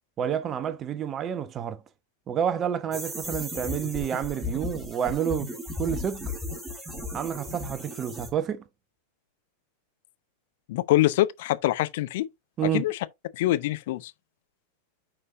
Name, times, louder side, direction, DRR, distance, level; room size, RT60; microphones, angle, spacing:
voice 1, 0.2-1.8 2.3-6.3 7.1-8.6 12.6-12.8, right 8 dB, 25° right, 0.9 m, -29 dB
sound 1, 2.9-8.3, left 2 dB, 10° right, 2.6 m, -35 dB
voice 2, 10.7-12.3 12.7-13.0 13.3-14.1, left 16 dB, 50° left, 0.7 m, -24 dB
9.4 x 5.4 x 2.6 m
figure-of-eight pair, 90°, 0 cm